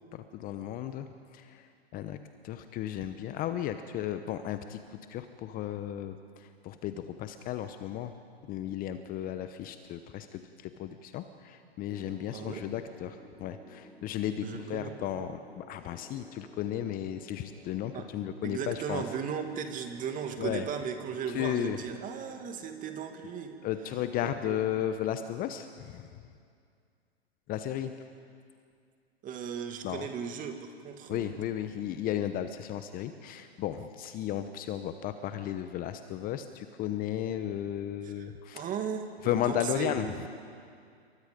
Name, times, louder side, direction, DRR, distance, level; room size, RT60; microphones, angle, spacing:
voice 1, 0.1-2.2 2.4-8.1 8.5-19.0 20.4-20.6 21.3-21.8 23.6-26.2 27.5-27.9 29.8-30.1 31.1-38.7 39.2-40.3, left 11 dB, 25° left, 9 dB, 0.9 m, -34 dB
sound 1, 11.9-26.2, right 1 dB, 5° right, 1.6 m, -56 dB
voice 2, 12.3-12.7 14.4-15.1 17.9-18.1 18.4-23.5 24.2-24.6 29.2-31.3 38.0-38.3 38.5-40.3, right 7 dB, 25° right, 6 dB, 2.2 m, -37 dB
28.0 x 23.5 x 5.2 m, 2.3 s
hypercardioid pair, 120°, 32 cm